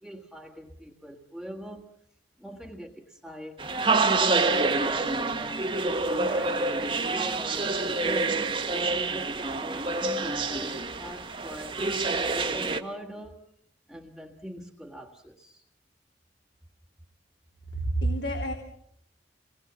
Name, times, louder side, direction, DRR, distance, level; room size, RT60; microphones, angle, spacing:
voice 1, 0.0-1.9 2.4-3.6 4.1-5.7 6.1-11.8 12.3-13.4 13.9-15.6, equal, ahead, -3 dB, 1.7 m, -42 dB
sound 1, 3.6-12.8, right 3 dB, 25° right, 1.4 m, -27 dB
voice 2, 17.7-18.5, right 2 dB, 70° left, 2 dB, 3.3 m, -28 dB
29.0 x 20.0 x 7.3 m, 0.73 s
head